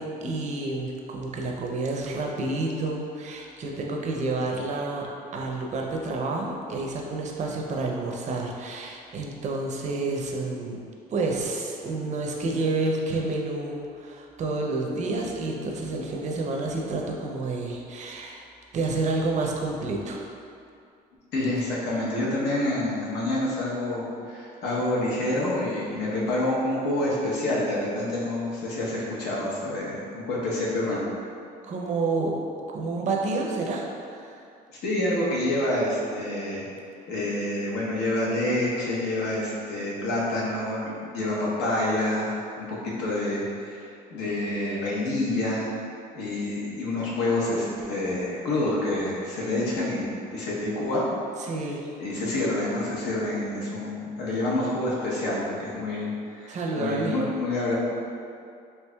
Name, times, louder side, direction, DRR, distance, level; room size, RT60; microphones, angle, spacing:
voice 1, 0.0-5.1 5.3-10.8 11.1-18.4 18.7-20.2 31.6-32.4 32.7-34.4 51.4-51.9 56.5-57.2, right 3 dB, 45° right, 0 dB, 0.5 m, -29 dB
voice 2, 21.3-31.0 34.8-36.6 37.1-45.7 46.1-51.0 52.0-57.7, left 1 dB, 85° left, -5 dB, 0.9 m, -27 dB
4.5 x 2.8 x 2.2 m, 2.4 s
cardioid pair, 110°, 17 cm